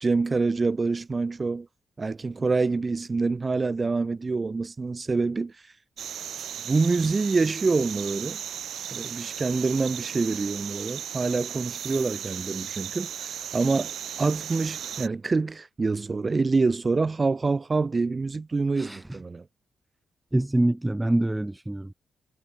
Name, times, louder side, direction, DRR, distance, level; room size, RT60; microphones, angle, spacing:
voice 1, 0.0-1.7 2.0-5.5 6.6-8.4 8.9-19.4, right 4 dB, 25° right, 1.6 m, -26 dB
sound 1, 6.0-15.1, right 9 dB, 75° right, 3.8 m, -36 dB
voice 2, 18.8-19.2 20.3-21.9, right 1 dB, 10° right, 0.5 m, -25 dB
cardioid pair, 125°, 0 cm